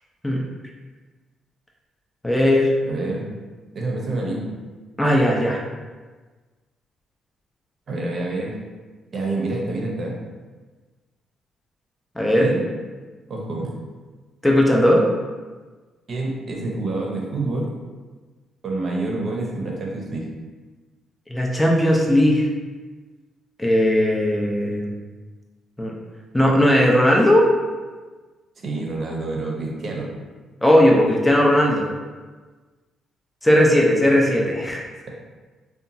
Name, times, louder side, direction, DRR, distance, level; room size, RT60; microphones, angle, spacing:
voice 1, 2.2-2.7 5.0-5.6 12.2-12.5 14.4-15.0 21.3-22.5 23.6-25.0 25.8-25.9 26.3-27.5 30.6-31.9 33.4-34.8, left 1 dB, 10° left, -2 dB, 0.4 m, -17 dB
voice 2, 2.8-3.3 3.7-4.5 7.9-8.6 9.1-10.2 12.4-12.7 13.3-13.7 16.1-17.7 18.6-20.3 28.6-30.1, right 2 dB, 50° right, -1 dB, 0.6 m, -27 dB
2.8 x 2.2 x 2.6 m, 1.3 s
cardioid pair, 90°, 0 cm